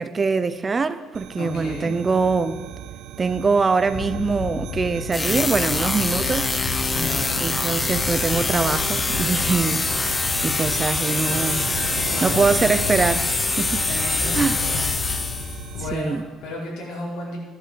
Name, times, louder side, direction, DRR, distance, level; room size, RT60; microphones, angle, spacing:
voice 1, 0.0-2.6 3.2-6.5 7.4-9.9 10.4-11.6 12.2-13.3 13.6-13.8 14.3-14.6 15.9-16.2, right 4 dB, 20° right, 0.6 m, -23 dB
sound 1, 1.1-15.8, right 11 dB, 80° right, 0.6 m, -36 dB
voice 2, 1.3-1.9 6.9-7.4 12.0-12.5 13.9-15.3 15.7-17.4, left 1 dB, 80° left, 5.1 m, -33 dB
sound 2, 3.9-16.0, left 8 dB, 65° left, 0.9 m, -33 dB
sound 3, 5.1-15.7, left 3 dB, 15° left, 0.7 m, -25 dB
14.0 x 11.0 x 7.9 m
cardioid pair, 160°, 0 cm